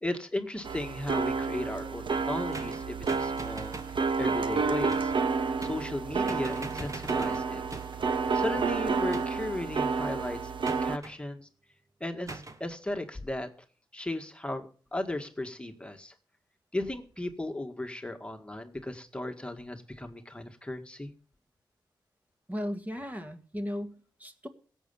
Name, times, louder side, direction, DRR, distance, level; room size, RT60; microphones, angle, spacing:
voice 1, 0.0-3.7 4.2-5.1 5.6-7.6 8.3-10.5 10.8-11.5 12.0-13.5 13.9-16.1 16.7-21.1, left 1 dB, 10° left, 5 dB, 1.9 m, -36 dB
sound 1, 0.6-11.0, right 4 dB, 70° right, 1.1 m, -30 dB
sound 2, 2.5-4.0 4.9-5.2 5.6-6.0 6.3-8.1 9.1-9.6 10.6-11.2 12.3-12.6, right 2 dB, 40° right, 1.6 m, -42 dB
voice 2, 22.5-24.5, equal, 20° right, 6 dB, 2.0 m, -36 dB
17.0 x 8.0 x 7.1 m, 0.42 s
wide cardioid pair, 80°, 9 cm